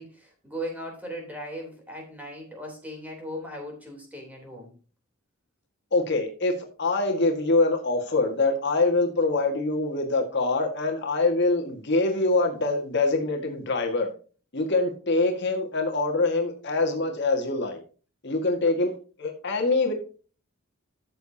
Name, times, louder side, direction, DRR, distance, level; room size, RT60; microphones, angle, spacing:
voice 1, 0.0-4.7, equal, 5° right, 1 dB, 3.4 m, -38 dB
voice 2, 5.9-14.1 14.5-17.8 18.2-19.9, left 3 dB, 50° left, 2 dB, 1.8 m, -24 dB
13.5 x 6.8 x 2.8 m, 0.38 s
head